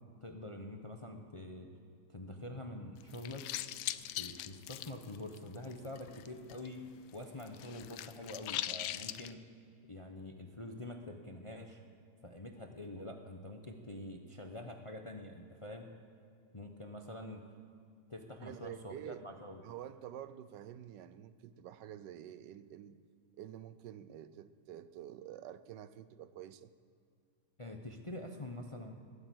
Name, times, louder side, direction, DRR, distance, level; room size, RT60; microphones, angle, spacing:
voice 1, 0.2-1.7 2.1-3.5 4.2-6.8 7.1-9.4 9.9-11.8 12.2-15.9 16.5-17.4 18.1-19.6 27.6-29.0, left 1 dB, 25° left, 4 dB, 0.7 m, -46 dB
sound 1, 3.0-6.7 7.0-9.3, left 13 dB, 80° left, 1.2 m, -41 dB
voice 2, 18.4-19.2 19.6-23.0 23.4-26.7, right 11 dB, 80° right, 13 dB, 1.3 m, -48 dB
20.5 x 8.9 x 7.8 m, 2.4 s
omnidirectional pair, 1.9 m